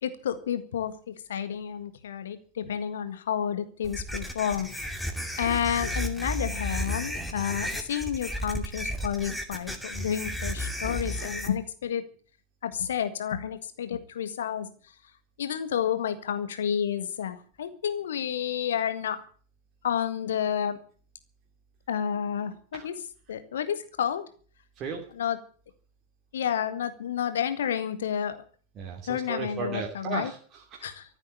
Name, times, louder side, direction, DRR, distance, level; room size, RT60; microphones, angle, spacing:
voice 1, 0.0-4.8 5.4-12.0 12.6-14.7 15.4-19.2 19.8-20.8 21.9-22.9 23.3-24.2 25.2-25.4 26.3-28.4 29.1-30.3 30.8-31.0, left 8 dB, 60° left, 11 dB, 1.7 m, -30 dB
sound 1, 3.8-11.5, equal, ahead, 2.5 m, -33 dB
voice 2, 24.8-25.1 28.7-30.9, right 5 dB, 35° right, -1 dB, 2.9 m, -35 dB
14.0 x 8.1 x 9.7 m, 0.43 s
figure-of-eight pair, 90°, 0 cm